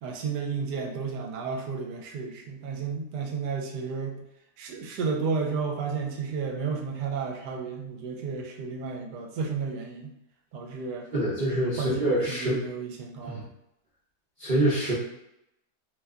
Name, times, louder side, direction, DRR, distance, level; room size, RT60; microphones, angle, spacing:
voice 1, 0.0-4.2 4.6-10.1 10.5-11.1 11.5-13.5, right 5 dB, 75° right, 1 dB, 1.1 m, -32 dB
voice 2, 11.1-12.6 13.3-13.4 14.4-14.9, right 1 dB, 55° right, -9 dB, 0.5 m, -25 dB
2.9 x 2.2 x 3.5 m, 0.83 s
omnidirectional pair, 1.8 m